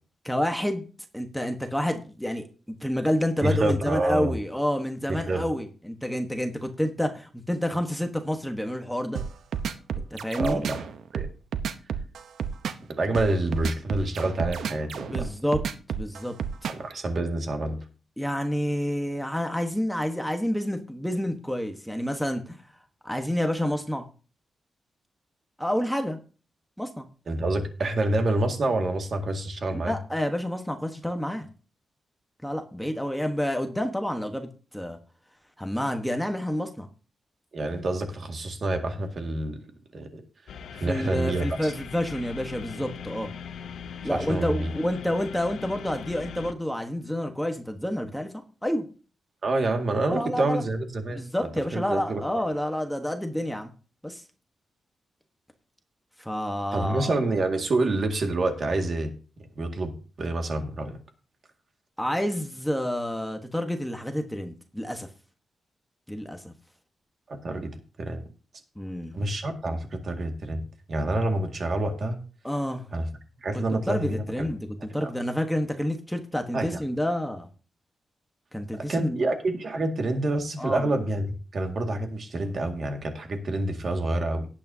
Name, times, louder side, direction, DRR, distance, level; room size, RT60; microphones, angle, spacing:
voice 1, 0.2-0.9 1.1-2.4 2.8-9.2 10.1-10.6 15.1-15.6 15.9-16.4 18.2-22.6 23.0-24.1 25.6-26.2 26.8-27.0 29.7-31.5 32.4-35.0 35.6-36.9 40.8-43.3 44.0-48.3 48.6-48.9 50.0-50.6 51.1-53.7 54.0-54.2 56.2-57.2 62.0-65.1 66.1-66.5 68.8-69.1 72.4-72.9 73.9-74.6 74.9-77.5 78.5-79.3 80.6-80.9, equal, ahead, 4 dB, 1.2 m, -29 dB
voice 2, 3.4-4.3 5.1-5.5 10.4-10.9 11.1-11.3 12.9-15.3 16.7-17.8 27.3-30.0 37.5-39.6 39.9-40.2 40.8-41.7 44.0-44.7 49.4-51.2 51.7-52.5 56.7-59.1 59.6-59.9 60.2-61.0 67.3-67.7 68.0-68.2 69.1-72.2 72.9-73.1 73.4-74.5 75.0-75.1 76.5-76.8 78.8-81.3 81.5-84.5, right 2 dB, 45° right, 4 dB, 2.0 m, -27 dB
sound 1, 9.1-16.9, right 7 dB, 90° right, 0.8 m, -31 dB
sound 2, 40.5-46.5, left 7 dB, 85° left, 0.8 m, -40 dB
18.0 x 8.4 x 2.8 m, 0.36 s
wide cardioid pair, 145°, 0 cm